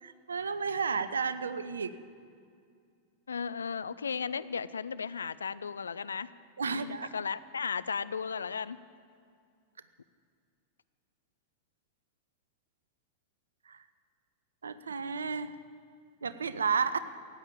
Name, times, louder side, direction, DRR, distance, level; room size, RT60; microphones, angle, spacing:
voice 1, 0.0-2.0 6.6-7.2 13.6-13.8 14.6-15.6 16.2-17.0, right 5 dB, 70° right, 13 dB, 0.6 m, -32 dB
voice 2, 3.3-6.3 6.7-8.8, left 6 dB, 70° left, 16 dB, 0.4 m, -35 dB
15.5 x 9.1 x 8.5 m, 2.3 s
figure-of-eight pair, 90°, 0 cm